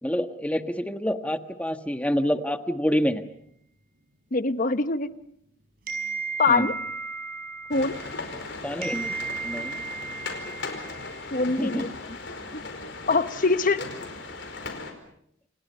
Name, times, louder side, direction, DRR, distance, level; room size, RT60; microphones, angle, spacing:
voice 1, 0.0-3.2 6.5-6.7 8.6-9.1 9.4-9.8 11.6-11.9, equal, 5° left, 7 dB, 1.4 m, -27 dB
voice 2, 4.3-5.1 6.4-6.7 7.7-7.9 11.3-11.9 12.5-12.6 13.1-13.9, left 3 dB, 45° left, 11 dB, 1.0 m, -23 dB
sound 1, 5.9-8.5 8.8-11.4, right 5 dB, 50° right, 5.9 m, -35 dB
Piano, 6.5-9.0, equal, 70° right, 4.3 m, -42 dB
sound 2, 7.7-14.9, left 3 dB, 65° left, 4.9 m, -37 dB
29.0 x 28.0 x 5.5 m, 0.72 s
head